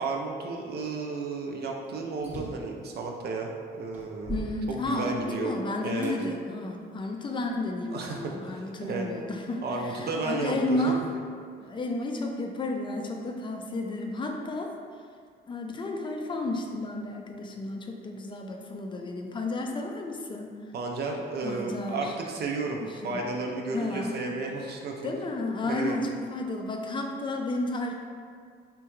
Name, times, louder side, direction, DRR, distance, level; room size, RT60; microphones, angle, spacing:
voice 1, 0.0-5.5 5.8-6.1 7.9-9.1 9.6-10.8 20.7-25.1 25.6-26.0, right 3 dB, 55° right, 1 dB, 0.4 m, -33 dB
sound 1, 2.2-2.7 3.4-3.5 3.9-5.4 6.0-6.2 6.9-7.9, right 2 dB, 10° right, 0.7 m, -40 dB
voice 2, 4.3-11.0 11.6-14.7 15.5-20.6 21.4-22.1 22.8-23.2 23.7-24.4 25.0-27.9, left 2 dB, 25° left, 2 dB, 0.4 m, -32 dB
3.6 x 2.2 x 2.9 m, 2.1 s
cardioid pair, 90°, 20 cm